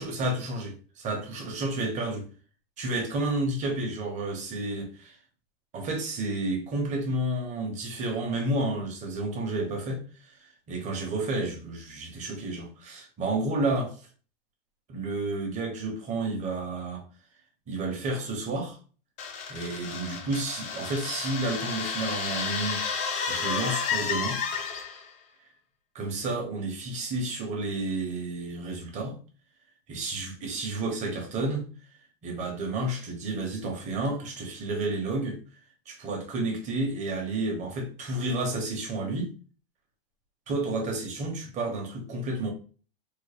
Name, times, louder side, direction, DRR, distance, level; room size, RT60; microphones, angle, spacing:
voice 1, 0.0-2.3 2.8-5.2 5.7-10.3 10.7-14.0 14.9-17.0 17.7-18.8 19.5-22.8 23.3-24.4 25.9-29.2 29.9-31.7 32.2-35.4 35.9-39.3 40.5-42.5, right 2 dB, 25° right, 0.9 m, -31 dB
sound 1, 19.2-25.1, left 6 dB, 25° left, 0.5 m, -31 dB
3.6 x 2.0 x 3.3 m
supercardioid pair, 145°, 30 cm